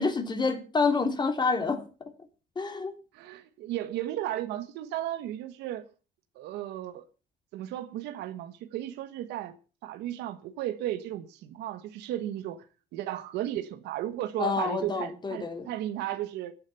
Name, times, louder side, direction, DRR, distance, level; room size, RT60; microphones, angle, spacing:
voice 1, 0.0-2.1 2.5-2.9 14.4-15.7, left 4 dB, 25° left, 3.2 m, -28 dB
voice 2, 3.1-5.8 6.3-7.1 7.5-9.6 9.8-12.6 12.9-16.5, right 13 dB, 85° right, 1.4 m, -34 dB
15.5 x 9.1 x 7.0 m
cardioid pair, 110°, 17 cm